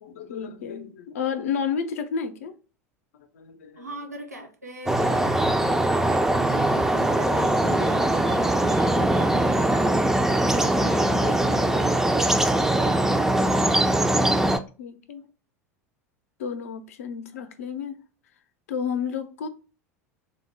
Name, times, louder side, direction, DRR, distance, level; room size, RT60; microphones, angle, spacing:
voice 1, 0.0-2.6 3.3-3.9 14.2-14.5 14.8-15.2 16.4-18.0 18.7-19.5, left 6 dB, 65° left, 0.5 m, -31 dB
voice 2, 3.8-13.2, right 1 dB, 85° right, 0.7 m, -39 dB
sound 1, 4.9-14.6, right 1 dB, 5° right, 0.3 m, -21 dB
3.8 x 2.0 x 3.2 m
figure-of-eight pair, 75°, 8 cm